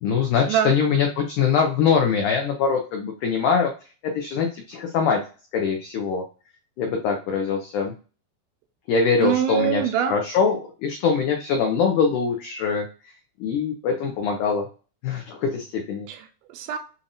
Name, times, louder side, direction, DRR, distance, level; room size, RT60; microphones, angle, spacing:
voice 1, 0.0-3.7 4.0-5.2 5.5-6.2 6.8-7.9 8.9-9.8 10.1-12.9 13.4-14.7 15.0-16.1, left 6 dB, 90° left, 2 dB, 1.7 m, -23 dB
voice 2, 9.2-10.2 16.1-16.8, right 10 dB, 80° right, 6 dB, 2.4 m, -24 dB
7.2 x 2.7 x 2.6 m, 0.36 s
omnidirectional pair, 4.4 m